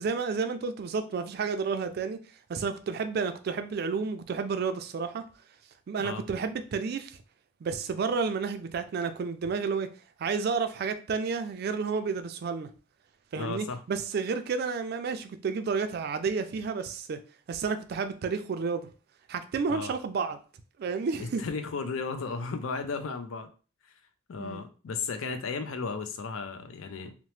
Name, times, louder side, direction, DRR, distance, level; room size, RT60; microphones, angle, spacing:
voice 1, 0.0-2.2 2.5-5.2 5.9-7.2 7.6-9.9 10.2-12.7 13.3-17.2 17.5-18.9 19.3-20.4 20.8-21.4 24.4-24.7, right 5 dB, 50° right, 0.3 m, -31 dB
voice 2, 13.4-13.8 19.7-19.9 21.2-23.5 24.3-27.1, left 4 dB, 90° left, 0.4 m, -34 dB
2.8 x 2.0 x 3.0 m
head